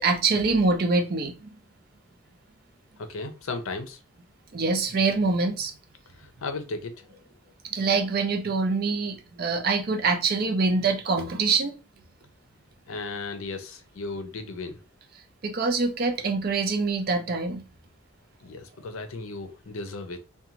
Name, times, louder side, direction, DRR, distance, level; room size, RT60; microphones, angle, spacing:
voice 1, 0.0-1.6 4.5-5.7 7.7-11.7 15.4-17.6, right 4 dB, 45° right, 0.5 m, -25 dB
voice 2, 3.0-4.0 6.2-7.2 12.9-14.8 18.4-20.2, left 3 dB, 80° left, 0.5 m, -35 dB
2.5 x 2.2 x 2.9 m
head